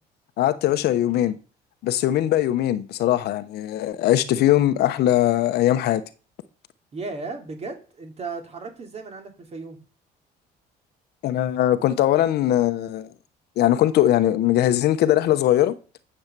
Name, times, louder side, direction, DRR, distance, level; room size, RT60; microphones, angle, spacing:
voice 1, 0.4-1.4 1.8-6.0 11.2-13.1 13.6-15.7, left 13 dB, 75° left, 1.0 m, -20 dB
voice 2, 6.9-9.8, right 3 dB, 40° right, 3.1 m, -35 dB
12.0 x 7.3 x 6.8 m
cardioid pair, 110°, 17 cm